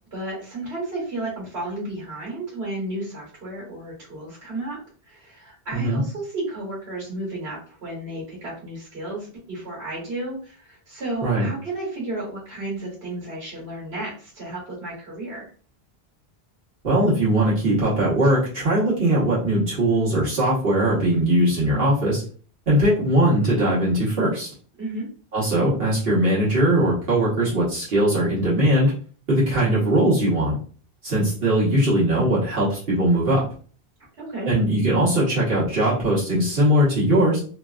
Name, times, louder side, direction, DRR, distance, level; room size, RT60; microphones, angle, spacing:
voice 1, 0.1-4.8 5.1-15.5 24.8-25.1 34.2-34.5, right 2 dB, 85° right, -5 dB, 1.5 m, -33 dB
voice 2, 16.8-22.2 22.7-24.5 25.3-28.9 29.3-30.5 31.0-33.4 34.4-37.4, right 1 dB, 65° right, -8 dB, 1.3 m, -20 dB
3.2 x 2.3 x 2.3 m, 0.41 s
omnidirectional pair, 1.1 m